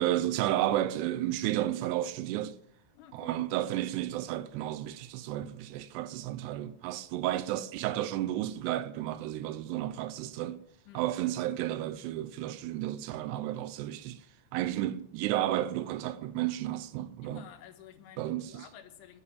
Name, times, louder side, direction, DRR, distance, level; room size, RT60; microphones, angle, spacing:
voice 1, 0.0-2.5 3.1-10.6 11.0-14.2 14.5-17.4 18.2-18.6, right 13 dB, 85° right, 2.4 m, -32 dB
voice 2, 2.9-3.4 10.9-11.1 17.2-19.2, left 9 dB, 85° left, 3.8 m, -52 dB
10.5 x 10.0 x 8.5 m
omnidirectional pair, 5.4 m